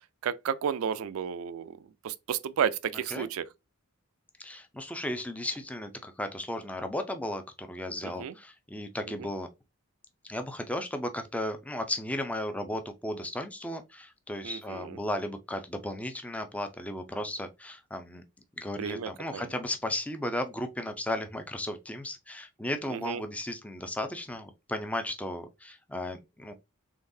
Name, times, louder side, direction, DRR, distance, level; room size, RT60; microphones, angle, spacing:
voice 1, 0.2-1.7 2.0-3.5 8.0-8.3 9.2-9.3 14.4-15.0 18.8-19.5 22.9-23.2, right 8 dB, 70° right, 0.4 m, -32 dB
voice 2, 4.4-9.5 10.2-18.2 18.6-26.5, left 1 dB, 5° left, 0.5 m, -35 dB
3.8 x 3.5 x 2.6 m
head